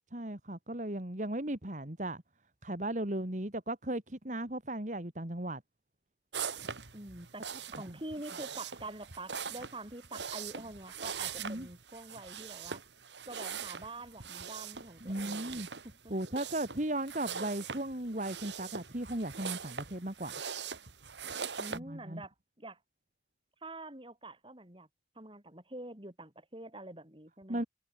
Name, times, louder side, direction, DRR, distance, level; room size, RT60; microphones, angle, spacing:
voice 1, 0.1-2.2 2.6-5.6 7.7-7.9 11.4-11.7 15.0-15.7 16.1-20.4 21.7-22.2 27.5-27.6, right 1 dB, 45° right, 2.7 m, -36 dB
sound 1, 6.3-21.8, right 6 dB, 90° right, 2.7 m, -42 dB
voice 2, 6.9-7.5 7.7-12.8 13.3-16.1 21.6-22.8 23.6-24.9 25.1-27.7, right 2 dB, 30° right, 4.5 m, -46 dB
head